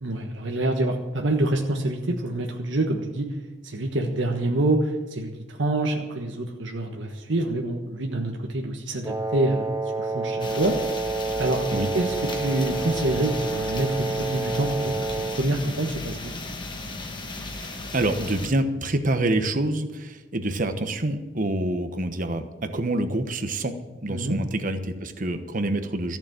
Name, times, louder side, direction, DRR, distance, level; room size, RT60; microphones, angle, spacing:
voice 1, 0.0-3.3 3.6-9.7 10.0-11.6 11.9-15.1 15.3-16.3 24.1-24.4, right 1 dB, 80° right, 2 dB, 1.4 m, -26 dB
Wind instrument woodwind instrument, 9.0-15.5, right 3 dB, 15° right, 0.5 m, -29 dB
sound 1, 10.4-18.5, left 2 dB, 25° left, 1.3 m, -35 dB
voice 2, 17.4-23.7 24.0-26.2, right 1 dB, 45° right, 8 dB, 1.2 m, -27 dB
14.0 x 7.2 x 9.1 m, 1.2 s
head